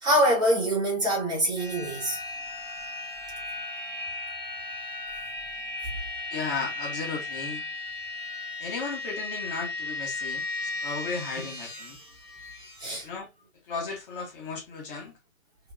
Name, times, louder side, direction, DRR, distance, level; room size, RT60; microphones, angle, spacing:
voice 1, 0.0-2.2 12.8-13.1, right 1 dB, 10° right, 2.0 m, -24 dB
sound 1, 1.6-12.9, left 3 dB, 15° left, 2.5 m, -36 dB
voice 2, 6.3-7.7 8.6-12.0 13.0-13.3 13.7-15.1, left 4 dB, 40° left, 1.9 m, -35 dB
5.5 x 3.3 x 2.4 m
hypercardioid pair, 145°, 41 cm